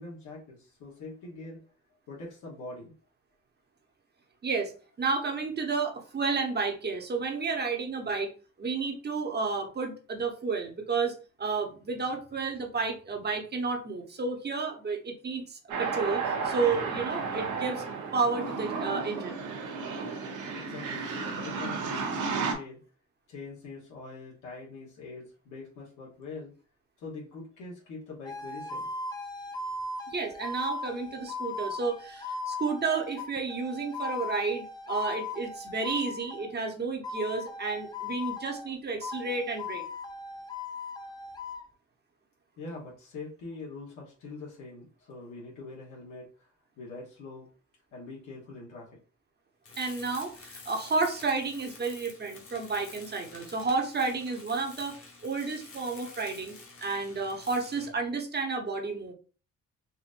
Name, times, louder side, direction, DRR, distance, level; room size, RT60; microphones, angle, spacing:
voice 1, 0.0-1.6 2.1-2.9 20.5-22.8 23.3-26.5 27.0-28.9 42.6-46.5 46.8-47.5 47.9-48.9, left 3 dB, 85° left, -4 dB, 1.2 m, -43 dB
voice 2, 4.4-4.7 5.0-8.3 8.6-17.8 18.1-19.4 30.1-39.8 49.8-59.1, right 4 dB, 35° right, 3 dB, 1.0 m, -31 dB
sound 1, 15.7-22.5, right 4 dB, 80° right, 0.9 m, -33 dB
sound 2, 28.3-36.6 37.0-38.7 39.0-41.6, left 3 dB, 15° left, 0.5 m, -38 dB
Tools, 49.6-58.0, left 4 dB, 45° left, 1.3 m, -49 dB
4.3 x 2.6 x 2.6 m, 0.37 s
cardioid pair, 90°, 30 cm